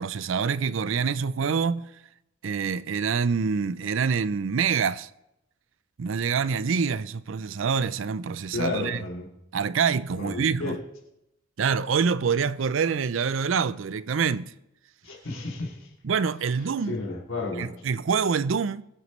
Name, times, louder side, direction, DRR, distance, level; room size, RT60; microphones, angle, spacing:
voice 1, 0.0-1.9 2.4-5.1 6.0-9.0 9.5-10.8 11.6-14.5 16.0-17.0 17.6-18.8, right 6 dB, 65° right, 0.5 m, -26 dB
voice 2, 8.5-9.3 10.2-10.8 15.0-15.9 16.9-17.7, left 3 dB, 75° left, 2.7 m, -32 dB
23.0 x 8.1 x 3.2 m
head